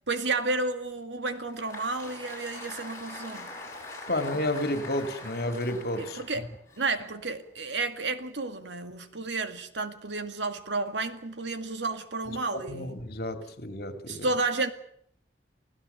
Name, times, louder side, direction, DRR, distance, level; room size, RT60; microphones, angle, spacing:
voice 1, 0.1-3.5 6.0-6.5 6.8-13.0 14.1-14.7, right 3 dB, 85° right, 2.1 m, -31 dB
Applause, 1.3-7.6, left 2 dB, 15° left, 7.3 m, -43 dB
voice 2, 4.1-6.2 12.3-12.4 12.7-14.3, left 1 dB, 55° left, 2.8 m, -31 dB
29.0 x 17.0 x 7.0 m
head